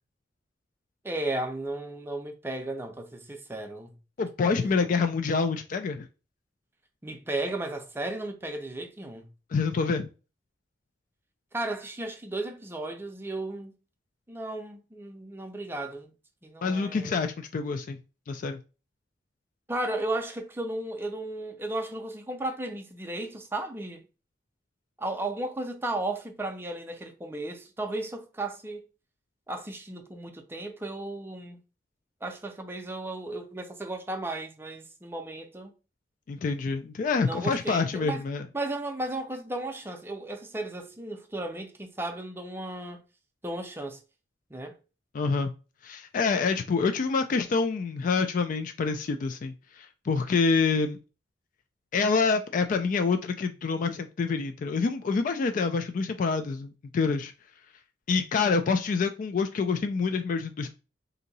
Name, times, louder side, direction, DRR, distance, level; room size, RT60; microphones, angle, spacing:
voice 1, 1.0-4.0 4.4-4.9 7.0-9.3 11.5-13.7 14.3-16.1 16.4-17.1 19.7-24.0 25.0-28.8 29.5-31.6 32.2-35.7 37.2-38.2 38.5-43.0 43.4-44.0 44.5-44.8, right 2 dB, 15° right, 0.5 m, -35 dB
voice 2, 4.2-6.1 9.5-10.1 16.6-18.0 18.3-18.6 36.3-38.5 45.1-45.5 45.8-51.0 51.9-57.3 58.1-60.7, left 4 dB, 45° left, 0.3 m, -27 dB
2.8 x 2.6 x 4.0 m
head